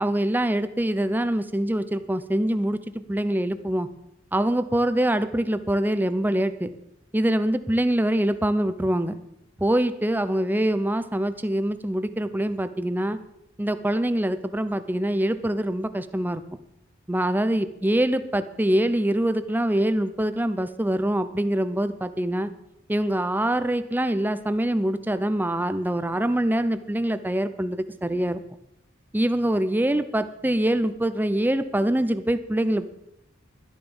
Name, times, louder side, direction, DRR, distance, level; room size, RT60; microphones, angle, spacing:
voice 1, 0.0-3.9 4.3-6.7 7.1-9.2 9.6-13.2 13.6-16.4 17.1-22.5 22.9-28.4 29.1-32.9, right 1 dB, 10° right, 11 dB, 0.7 m, -24 dB
12.0 x 10.5 x 7.1 m, 0.83 s
head